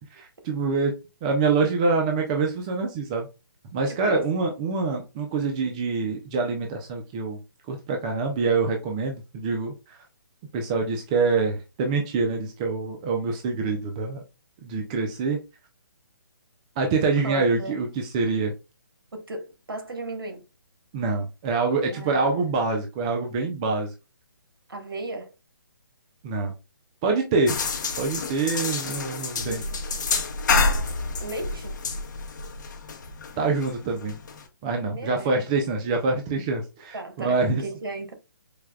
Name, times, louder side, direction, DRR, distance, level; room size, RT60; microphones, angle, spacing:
voice 1, 0.2-0.9 1.2-3.3 3.7-7.4 7.7-10.0 10.5-14.2 14.6-15.4 16.8-18.5 20.9-23.9 26.2-26.5 27.0-27.6 28.0-29.6 33.4-34.2 34.6-37.6, right 4 dB, 15° right, 0.3 m, -25 dB
voice 2, 3.9-4.2 17.2-17.8 19.1-20.4 21.9-22.5 24.7-25.3 29.5-30.0 31.2-31.8 34.9-35.4 36.9-38.1, right 2 dB, 80° right, 1.3 m, -36 dB
sound 1, 27.5-34.4, left 4 dB, 55° left, 0.8 m, -28 dB
4.7 x 2.1 x 2.3 m
hypercardioid pair, 160°, 12 cm